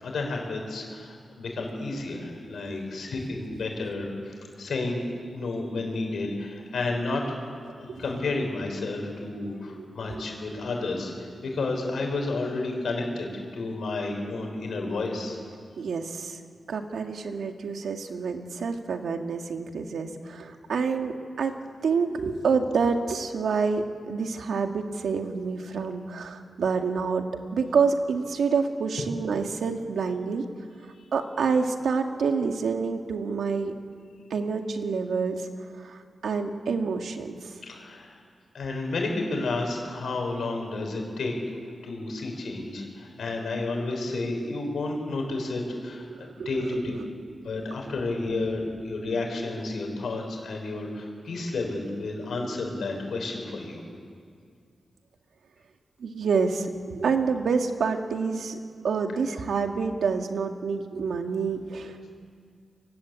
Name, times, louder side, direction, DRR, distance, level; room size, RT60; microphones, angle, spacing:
voice 1, 0.0-5.0 5.3-7.4 7.8-15.4 31.0-31.1 37.6-38.2 38.5-41.3 41.8-46.9 47.4-53.8, left 2 dB, 70° left, 1 dB, 6.3 m, -31 dB
voice 2, 7.7-8.0 9.7-10.2 15.8-16.4 16.7-21.6 21.8-27.2 27.5-30.4 31.1-33.7 34.3-35.5 35.7-37.5 46.1-47.0 56.0-58.6 58.8-62.1, right 5 dB, 80° right, 4 dB, 2.2 m, -28 dB
29.5 x 23.5 x 8.5 m, 2.2 s
wide cardioid pair, 160°, 0 cm